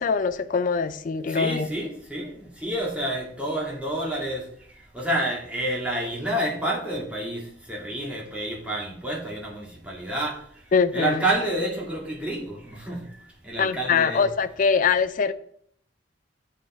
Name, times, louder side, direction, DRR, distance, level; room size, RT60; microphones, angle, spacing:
voice 1, 0.0-1.7 10.7-11.2 13.6-15.3, left 5 dB, 45° left, 0.4 m, -23 dB
voice 2, 1.3-4.4 4.9-7.4 7.7-10.4 10.9-13.0 13.4-14.2, right 1 dB, 5° right, 2.3 m, -29 dB
8.5 x 4.5 x 4.4 m
head